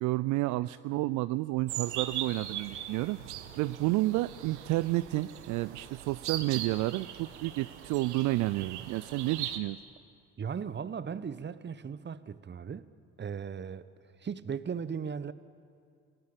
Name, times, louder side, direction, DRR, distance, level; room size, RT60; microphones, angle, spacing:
voice 1, 0.0-3.2 3.6-9.8, right 19 dB, 60° right, 0.5 m, -30 dB
sound 1, 1.7-9.6, right 11 dB, 80° right, 1.2 m, -40 dB
voice 2, 10.4-12.9 13.2-15.3, right 6 dB, 30° right, 1.0 m, -37 dB
29.5 x 16.5 x 8.4 m
figure-of-eight pair, 45°, 34 cm